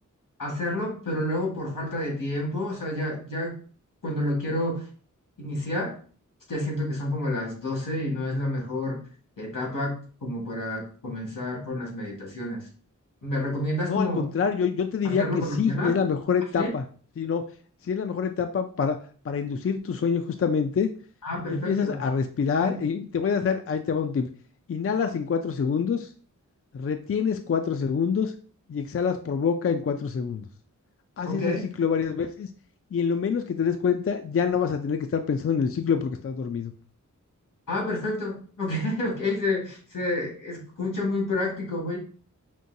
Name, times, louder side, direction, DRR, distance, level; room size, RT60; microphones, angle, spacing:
voice 1, 0.4-3.6 4.0-4.9 5.4-6.0 6.5-9.0 9.4-12.7 13.2-14.2 15.0-16.0 16.6-16.7 21.2-22.0 22.6-22.8 31.3-31.6 37.7-42.0, left 1 dB, 90° left, -1 dB, 1.8 m, -29 dB
voice 2, 13.9-16.8 17.2-17.5 17.8-19.0 19.2-20.9 21.5-24.3 24.7-26.1 26.7-28.3 28.7-30.4 31.2-32.5 32.9-36.7, left 6 dB, 45° left, 7 dB, 0.4 m, -26 dB
5.3 x 2.7 x 2.6 m, 0.42 s
wide cardioid pair, 75°, 32 cm